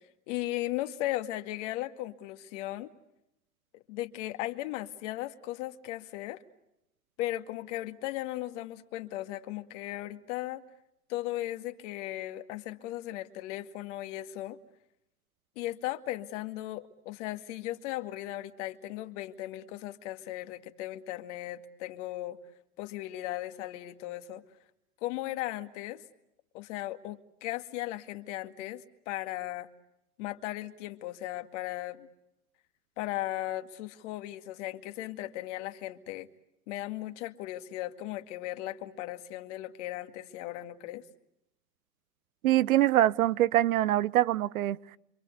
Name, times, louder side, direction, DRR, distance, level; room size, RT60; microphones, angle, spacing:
voice 1, 0.3-2.9 3.9-6.4 7.2-10.6 11.1-14.6 15.6-22.4 22.8-24.4 25.0-26.0 26.5-29.7 30.2-32.1 33.0-36.3 36.7-41.0, left 15 dB, 50° left, 2.2 m, -37 dB
voice 2, 42.4-45.0, right 14 dB, 65° right, 1.0 m, -24 dB
27.0 x 26.0 x 8.3 m
hypercardioid pair, 115°, 45 cm